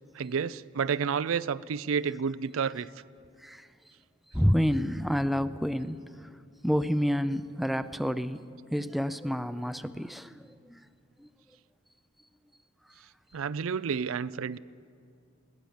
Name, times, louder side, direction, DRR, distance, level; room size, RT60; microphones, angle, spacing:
voice 1, 0.1-2.9 13.3-14.6, right 6 dB, 80° right, 0.4 m, -30 dB
voice 2, 4.3-6.4 6.6-8.4 8.7-10.9 11.2-11.3, equal, ahead, 0.4 m, -29 dB
21.0 x 17.5 x 7.2 m
head